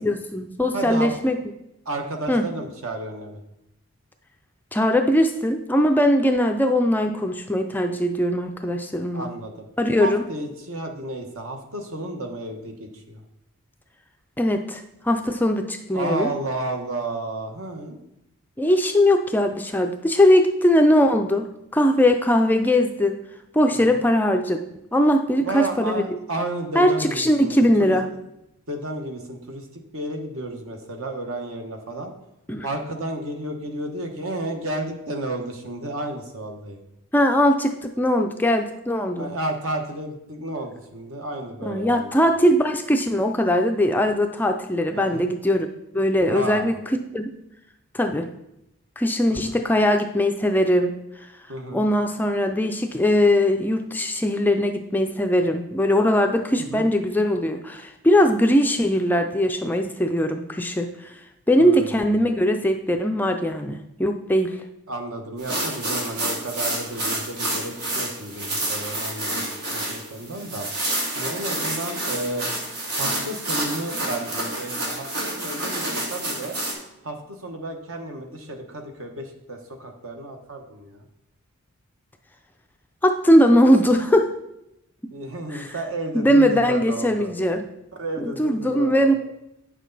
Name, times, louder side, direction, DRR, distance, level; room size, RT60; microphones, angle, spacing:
voice 1, 0.0-1.4 2.3-2.5 4.7-9.3 9.8-10.3 14.4-16.3 18.6-23.2 23.5-24.6 24.9-26.2 26.7-28.1 32.5-32.7 37.1-39.3 41.6-45.7 45.9-47.3 47.9-48.3 49.0-50.9 51.7-61.1 61.5-64.6 83.0-84.3 85.5-85.8 86.1-87.7 88.2-89.1, equal, 10° left, 5 dB, 0.3 m, -20 dB
voice 2, 0.7-1.1 1.8-3.4 9.1-9.7 10.0-13.2 15.9-18.0 23.7-24.0 25.4-28.1 28.7-29.6 29.9-32.1 32.6-36.8 39.2-42.2 44.9-45.2 46.3-46.7 49.3-49.6 51.5-51.8 56.6-56.9 61.6-62.0 64.9-69.4 69.7-70.7 71.2-72.5 73.0-76.6 77.0-81.1 85.1-87.3 88.0-89.1, right 2 dB, 65° right, 3 dB, 1.2 m, -32 dB
sound 1, 65.4-76.7, right 1 dB, 90° right, 2.4 m, -29 dB
9.1 x 6.4 x 3.9 m, 0.86 s
head